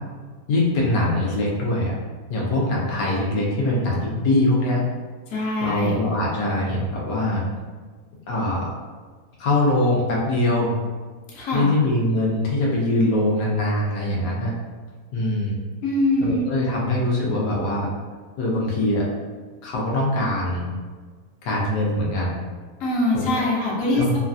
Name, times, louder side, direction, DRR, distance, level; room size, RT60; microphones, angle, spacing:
voice 1, 0.5-1.9 2.3-4.8 5.6-7.4 8.3-8.7 9.4-10.7 11.5-14.5 15.1-15.6 16.2-17.9 18.4-19.0 19.6-20.7 21.4-22.4 23.1-23.5 23.9-24.2, left 1 dB, 85° left, -3 dB, 1.2 m, -22 dB
voice 2, 5.3-6.0 11.3-11.7 15.8-16.5 22.8-24.2, left 1 dB, 60° left, -4 dB, 1.0 m, -23 dB
3.1 x 2.3 x 2.5 m, 1.5 s
omnidirectional pair, 1.8 m